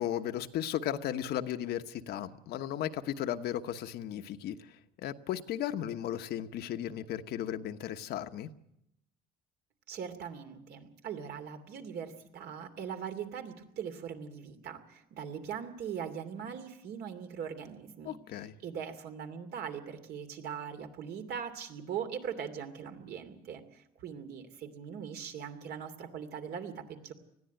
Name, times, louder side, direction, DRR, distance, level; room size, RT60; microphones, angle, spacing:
voice 1, 0.0-8.5 18.0-18.5, left 11 dB, 70° left, 8 dB, 1.1 m, -35 dB
voice 2, 9.9-18.1 18.6-27.1, right 7 dB, 70° right, 6 dB, 2.8 m, -41 dB
20.0 x 14.5 x 9.2 m, 0.81 s
cardioid pair, 110°, 17 cm